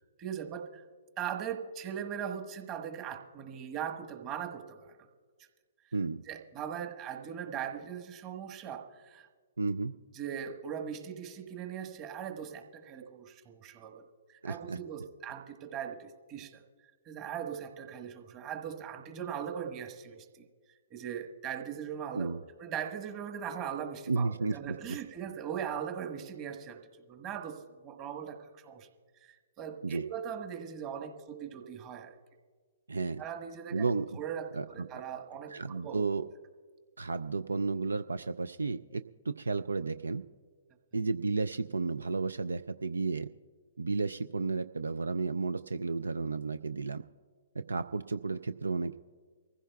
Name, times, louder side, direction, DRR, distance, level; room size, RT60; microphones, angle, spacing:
voice 1, 0.2-0.8 1.2-5.0 6.3-9.3 10.1-16.6 17.0-20.4 20.9-28.9 29.2-32.2 33.2-33.9 34.1-35.5 35.8-36.0, right 8 dB, 30° right, 5 dB, 1.3 m, -40 dB
voice 2, 5.9-6.2 9.6-9.9 14.4-14.8 22.1-22.4 24.1-24.6 29.8-30.0 32.9-33.2 33.7-34.1 34.5-34.7 35.5-36.2 37.0-40.2 40.9-43.3 43.8-47.0 47.7-49.0, right 4 dB, 80° right, 13 dB, 0.3 m, -32 dB
24.5 x 15.5 x 2.3 m, 1.6 s
figure-of-eight pair, 125°, 0 cm